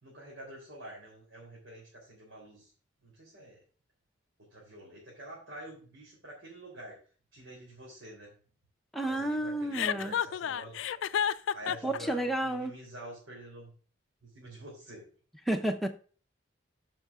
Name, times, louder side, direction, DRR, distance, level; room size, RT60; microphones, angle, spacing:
voice 1, 0.0-2.7 3.0-3.6 4.5-7.0 7.3-8.3 9.0-10.8 11.5-13.7 14.2-15.0, right 1 dB, 85° right, -4 dB, 3.4 m, -47 dB
voice 2, 8.9-10.1 11.8-12.7 15.5-15.9, right 1 dB, ahead, 3 dB, 0.7 m, -31 dB
Chuckle chortle, 9.7-12.0, left 8 dB, 80° left, 0.4 m, -30 dB
14.0 x 5.8 x 2.4 m, 0.40 s
head